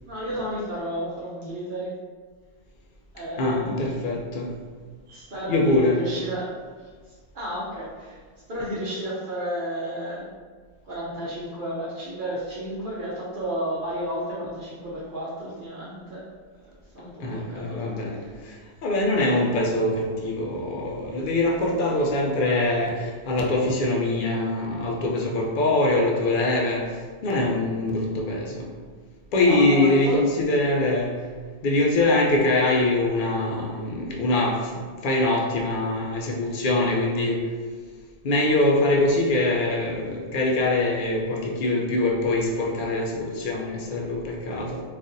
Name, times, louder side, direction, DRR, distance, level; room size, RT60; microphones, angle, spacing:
voice 1, 0.1-1.9 3.1-4.0 5.1-6.6 7.3-8.2 8.5-10.3 10.9-16.3 16.9-18.3 29.4-30.6, equal, 55° right, -7 dB, 0.8 m, -32 dB
voice 2, 3.4-4.5 5.5-5.9 17.2-28.7 29.3-31.1 31.6-37.4 38.2-44.8, left 2 dB, 55° left, -1 dB, 0.7 m, -23 dB
3.9 x 2.5 x 2.6 m, 1.6 s
omnidirectional pair, 1.1 m